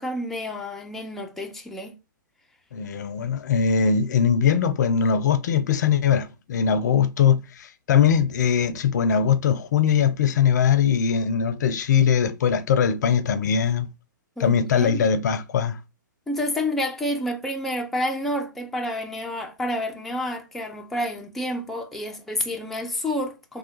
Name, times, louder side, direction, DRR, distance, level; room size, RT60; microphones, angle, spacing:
voice 1, 0.0-1.9 14.4-15.1 16.3-23.6, left 1 dB, ahead, 0.4 m, -29 dB
voice 2, 2.7-13.9 14.4-15.8, left 7 dB, 60° left, 0.5 m, -21 dB
3.3 x 2.1 x 2.9 m
figure-of-eight pair, 120°, 11 cm